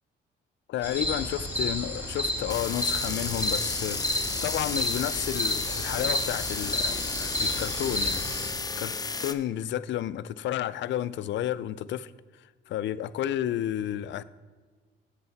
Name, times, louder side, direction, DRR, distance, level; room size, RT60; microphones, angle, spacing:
voice 1, 0.7-4.0 4.4-8.3 8.8-8.9 9.2-12.1 12.7-14.2, left 12 dB, 70° left, 16 dB, 0.4 m, -31 dB
sound 1, 0.8-8.5, left 1 dB, 10° right, 2.5 m, -31 dB
sound 2, 2.5-9.3, left 4 dB, 20° left, 0.5 m, -33 dB
8.0 x 7.7 x 4.0 m, 1.4 s
cardioid pair, 90°, 20 cm